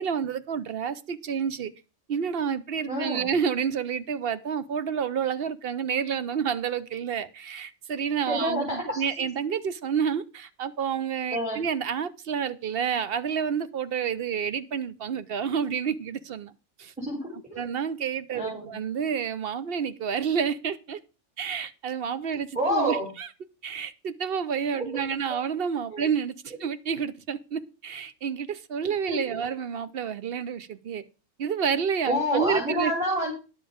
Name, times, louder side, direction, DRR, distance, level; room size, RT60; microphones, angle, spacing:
voice 1, 0.0-1.7 2.1-16.5 16.8-16.9 17.5-21.0 21.4-23.3 23.6-31.0 31.4-32.9, right 7 dB, 55° right, 0.8 m, -29 dB
voice 2, 2.9-3.3 8.3-9.0 11.3-11.6 17.0-17.6 18.3-18.7 22.6-23.1 24.7-24.8 25.9-26.1 29.1-29.3 32.1-33.3, equal, 5° right, 3.4 m, -28 dB
10.5 x 7.3 x 5.1 m
omnidirectional pair, 1.3 m